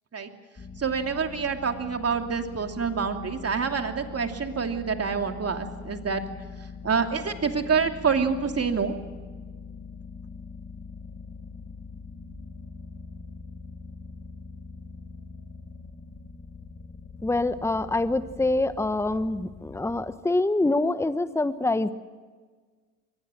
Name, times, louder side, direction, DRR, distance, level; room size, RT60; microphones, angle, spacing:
sound 1, 0.6-20.2, left 4 dB, 30° left, 2.3 m, -43 dB
voice 1, 0.8-6.2 6.8-8.9, right 5 dB, 35° right, 5 dB, 2.8 m, -27 dB
voice 2, 17.2-21.9, left 2 dB, 5° left, 13 dB, 1.1 m, -25 dB
23.5 x 19.0 x 7.7 m, 1.5 s
hypercardioid pair, 60°, 40 cm